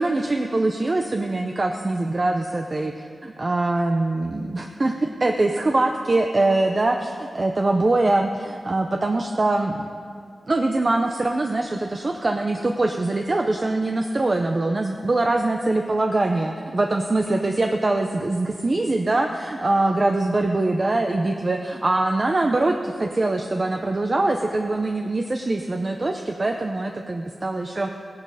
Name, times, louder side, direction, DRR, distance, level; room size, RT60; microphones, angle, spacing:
voice 1, 0.0-9.9 10.5-27.9, right 2 dB, 35° right, 4 dB, 0.6 m, -23 dB
16.5 x 10.5 x 4.9 m, 2.2 s
wide cardioid pair, 120°, 0 cm